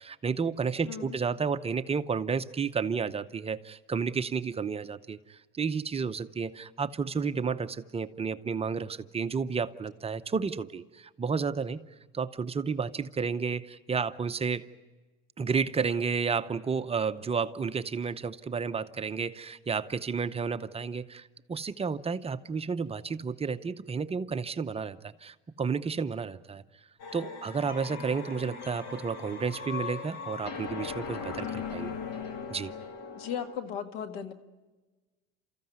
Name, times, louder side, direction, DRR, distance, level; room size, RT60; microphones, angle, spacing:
voice 1, 0.0-11.8 12.1-14.7 15.4-26.6 27.1-31.9 32.5-32.7, right 5 dB, 20° right, 10 dB, 0.7 m, -31 dB
voice 2, 0.8-1.2 33.2-34.3, left 8 dB, 85° left, 9 dB, 1.9 m, -36 dB
Suspense Tension Crescente, 27.0-33.6, left 5 dB, 60° left, 2.6 m, -39 dB
29.5 x 14.5 x 9.4 m, 1.2 s
supercardioid pair, 115°, 29 cm